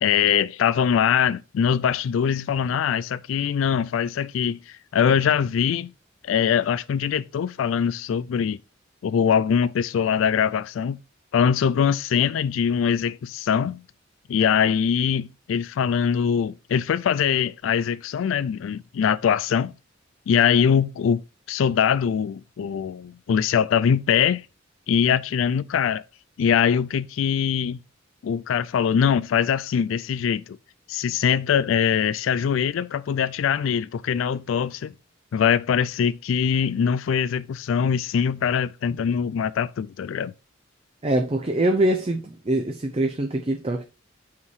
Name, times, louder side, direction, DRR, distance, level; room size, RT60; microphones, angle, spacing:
voice 1, 0.0-5.9 6.2-8.6 9.0-11.0 11.3-13.8 14.3-19.7 20.3-21.2 21.5-24.5 24.9-26.0 26.4-27.8 28.2-30.6 30.9-34.9 35.3-40.3, left 7 dB, 75° left, 0.3 m, -22 dB
voice 2, 41.0-43.8, right 1 dB, 30° right, 0.6 m, -23 dB
5.7 x 4.7 x 4.6 m
head